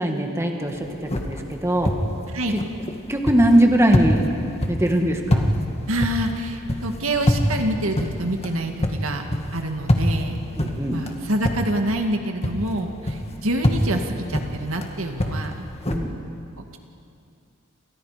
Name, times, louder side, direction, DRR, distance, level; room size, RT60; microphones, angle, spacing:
voice 1, 0.0-1.9 2.5-2.6 3.1-4.3 4.7-5.5 10.6-11.0 15.9-16.2, right 1 dB, 15° right, 2 dB, 1.8 m, -21 dB
sound 1, 0.7-12.1 12.4-16.0, left 1 dB, 30° left, 2.0 m, -26 dB
voice 2, 2.3-2.6 5.9-9.2 9.5-15.7, right 1 dB, 70° right, 4 dB, 2.2 m, -27 dB
29.0 x 28.0 x 5.2 m, 2.5 s
head